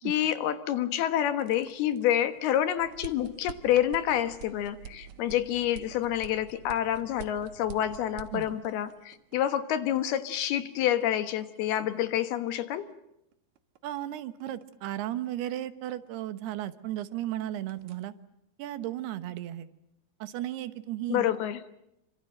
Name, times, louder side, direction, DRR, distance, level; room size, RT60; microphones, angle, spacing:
voice 1, 0.0-12.9 21.1-21.6, left 11 dB, 70° left, 11 dB, 3.1 m, -28 dB
sound 1, 1.3-17.1 17.4-18.1, right 7 dB, 60° right, 2.1 m, -49 dB
voice 2, 13.8-18.1 18.6-19.7 20.2-21.3, right 13 dB, 75° right, 13 dB, 3.0 m, -35 dB
27.0 x 25.5 x 7.7 m, 0.84 s
omnidirectional pair, 4.9 m